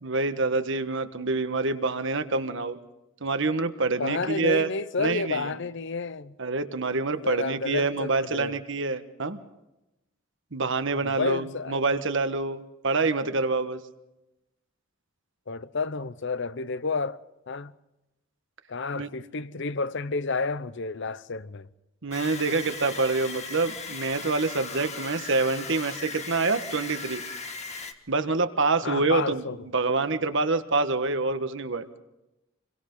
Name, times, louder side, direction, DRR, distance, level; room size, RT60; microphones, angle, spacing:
voice 1, 0.0-2.8 3.2-4.7 5.0-5.5 6.4-9.4 10.5-13.8 18.9-19.1 22.0-27.2 28.1-31.9, right 3 dB, 65° right, 1.4 m, -26 dB
voice 2, 4.0-6.3 7.2-8.6 11.0-11.8 15.5-17.2 17.5-17.7 18.7-21.7 28.8-29.6, left 4 dB, 60° left, 0.8 m, -30 dB
sound 1, 22.1-27.9, left 4 dB, 35° left, 1.8 m, -38 dB
28.5 x 23.0 x 3.9 m
head